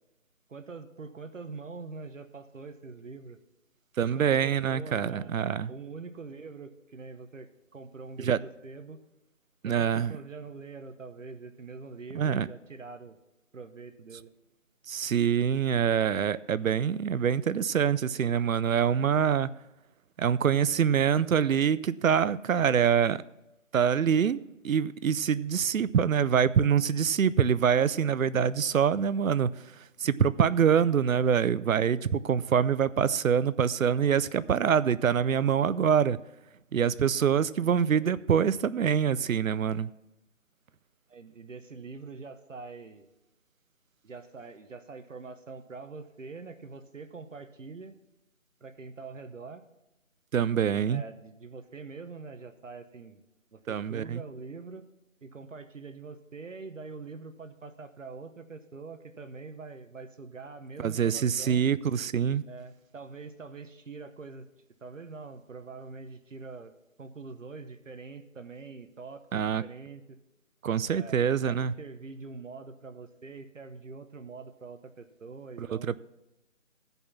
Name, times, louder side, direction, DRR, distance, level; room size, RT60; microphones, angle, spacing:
voice 1, 0.5-3.4 4.1-5.3 5.7-9.0 9.6-13.2 13.5-14.3 37.0-37.1 41.1-43.1 44.0-48.0 48.6-49.7 50.9-53.2 53.5-54.9 55.2-61.6 62.5-64.5 64.8-66.7 67.0-70.2 70.9-71.2 71.4-75.9, right 4 dB, 70° right, 1.0 m, -44 dB
voice 2, 4.0-5.7 8.2-8.4 9.6-10.1 12.1-12.5 14.9-19.5 20.2-23.2 23.7-29.5 30.0-36.2 36.7-39.9 50.3-51.0 53.7-54.2 60.8-62.4 69.3-69.6 70.6-71.7 75.6-75.7, right 8 dB, 85° right, 0.6 m, -25 dB
14.0 x 5.4 x 5.8 m
figure-of-eight pair, 170°, 39 cm